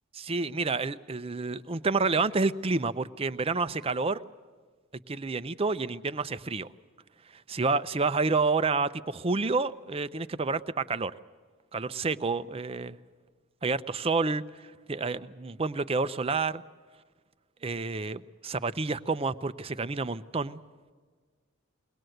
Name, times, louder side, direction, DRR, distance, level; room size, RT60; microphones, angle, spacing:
voice 1, 0.2-4.2 5.1-6.7 7.3-11.1 11.7-13.0 13.6-16.6 17.6-20.6, right 4 dB, 30° right, 13 dB, 0.5 m, -29 dB
23.0 x 19.0 x 7.9 m, 1.5 s
head